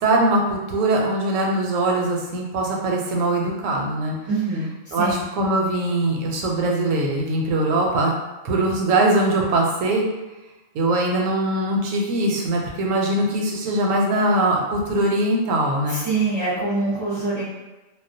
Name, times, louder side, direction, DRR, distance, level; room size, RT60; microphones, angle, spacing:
voice 1, 0.0-4.1 4.9-8.1 8.4-10.1 10.7-16.0, right 2 dB, 85° right, 0 dB, 1.0 m, -21 dB
voice 2, 4.3-4.7 5.0-5.2 15.9-17.4, right 3 dB, 20° right, -10 dB, 0.6 m, -24 dB
2.3 x 2.1 x 2.6 m, 1.1 s
omnidirectional pair, 1.3 m